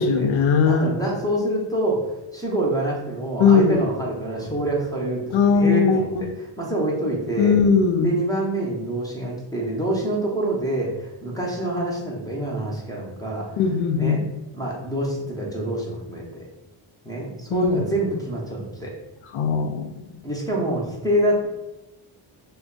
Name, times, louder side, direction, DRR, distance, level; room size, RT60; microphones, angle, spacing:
voice 1, 0.0-0.9 3.4-3.8 5.3-6.2 7.4-8.1 13.6-14.2 17.5-17.8 19.3-19.9, left 5 dB, 75° left, 6 dB, 0.5 m, -19 dB
voice 2, 0.6-6.1 6.4-7.6 8.0-13.5 14.0-14.2 14.5-16.5 17.0-18.9 20.2-21.5, right 1 dB, 10° left, -3 dB, 0.6 m, -26 dB
2.4 x 2.2 x 3.8 m, 0.99 s
cardioid pair, 105°, 49 cm